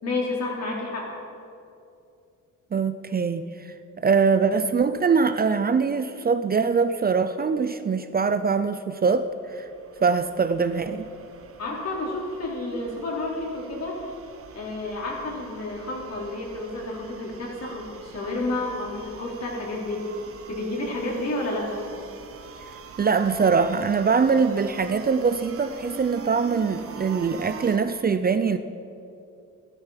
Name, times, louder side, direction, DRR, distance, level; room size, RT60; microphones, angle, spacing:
voice 1, 0.0-1.1 11.6-14.0 14.5-20.0 20.5-21.8, left 2 dB, 60° left, -3 dB, 4.2 m, -30 dB
voice 2, 2.7-3.4 4.0-9.3 9.5-9.6 10.0-11.0 23.0-28.6, right 5 dB, 30° right, 11 dB, 0.6 m, -23 dB
sound 1, 9.0-27.8, right 6 dB, 50° right, 1.3 m, -44 dB
13.5 x 12.5 x 5.9 m, 2.6 s
cardioid pair, 90°, 30 cm